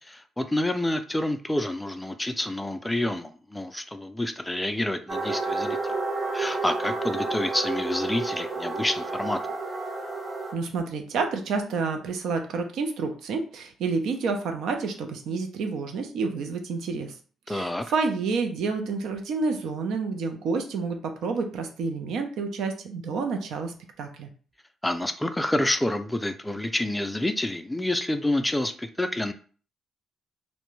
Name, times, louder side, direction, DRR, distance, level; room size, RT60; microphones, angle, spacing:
voice 1, 0.1-5.9 6.3-9.4 17.5-17.9 24.8-29.3, left 1 dB, 10° left, 8 dB, 0.3 m, -28 dB
sound 1, 5.1-10.5, right 3 dB, 30° right, 0.6 m, -30 dB
voice 2, 10.5-17.1 17.5-24.3, right 4 dB, 80° right, 5 dB, 0.5 m, -29 dB
2.5 x 2.2 x 3.0 m, 0.40 s
cardioid pair, 90°, 0 cm